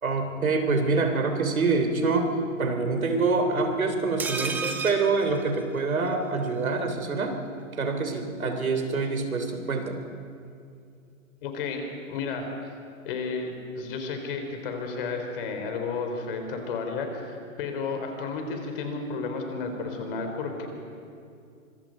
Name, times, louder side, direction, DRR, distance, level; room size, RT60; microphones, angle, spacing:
voice 1, 0.0-2.3 2.6-7.4 7.8-10.0, right 4 dB, 80° right, 6 dB, 3.3 m, -26 dB
sound 1, 4.2-6.2 6.5-6.6 6.8-6.9, right 4 dB, 5° right, 0.6 m, -33 dB
voice 2, 11.4-12.4 13.0-20.7, left 4 dB, 40° left, 4 dB, 3.9 m, -32 dB
25.0 x 23.0 x 5.3 m, 2.4 s
hypercardioid pair, 140°, 42 cm